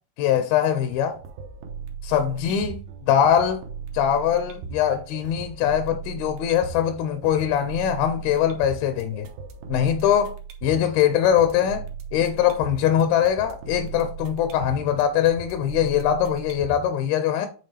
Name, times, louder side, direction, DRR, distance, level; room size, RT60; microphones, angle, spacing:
voice 1, 0.2-1.2 2.0-2.8 3.1-3.6 3.9-9.3 9.7-10.4 10.6-11.9 12.1-17.5, left 9 dB, 85° left, 2.5 m, -22 dB
sound 1, 0.9-16.9, right 6 dB, 85° right, 2.8 m, -38 dB
8.0 x 3.9 x 3.3 m
omnidirectional pair, 4.2 m